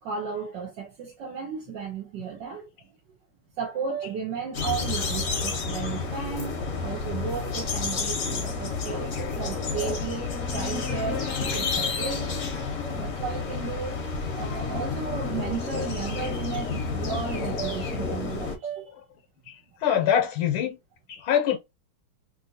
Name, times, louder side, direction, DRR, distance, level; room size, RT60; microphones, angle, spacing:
voice 1, 0.0-3.2 3.6-12.3 12.8-14.0 14.3-18.9, right 6 dB, 60° right, 1.4 m, -34 dB
sound 1, 4.5-18.6, left 4 dB, 50° left, 1.0 m, -30 dB
voice 2, 19.5-20.8 21.1-21.6, left 9 dB, 75° left, 1.5 m, -24 dB
3.4 x 2.7 x 2.7 m
omnidirectional pair, 2.3 m